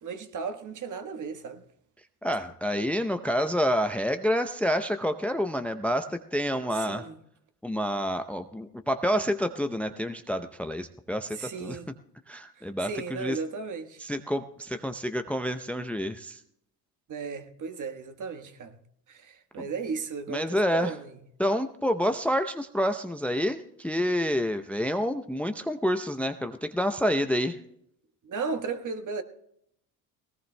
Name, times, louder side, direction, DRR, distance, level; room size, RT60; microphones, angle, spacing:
voice 1, 0.0-1.6 6.7-7.2 11.3-11.9 12.6-14.0 17.1-18.8 19.1-21.1 28.2-29.2, right 5 dB, 40° right, 1.4 m, -35 dB
voice 2, 2.2-7.1 7.6-11.8 12.3-13.4 14.0-16.4 19.6-19.7 20.3-20.9 21.4-27.6, equal, 5° left, 0.6 m, -28 dB
20.0 x 18.0 x 2.2 m
hypercardioid pair, 70°, 44 cm